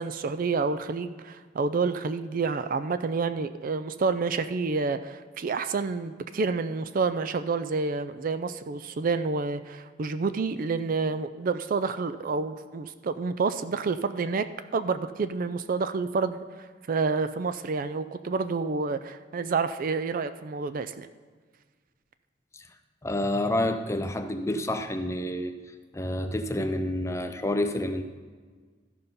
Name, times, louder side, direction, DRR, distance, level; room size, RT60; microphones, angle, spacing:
voice 1, 0.0-14.5 14.7-16.4 16.9-21.1, right 4 dB, 45° right, 11 dB, 0.4 m, -29 dB
voice 2, 23.0-25.6 25.9-28.0, left 1 dB, 15° left, 7 dB, 0.5 m, -28 dB
13.5 x 5.5 x 5.3 m, 1.5 s
head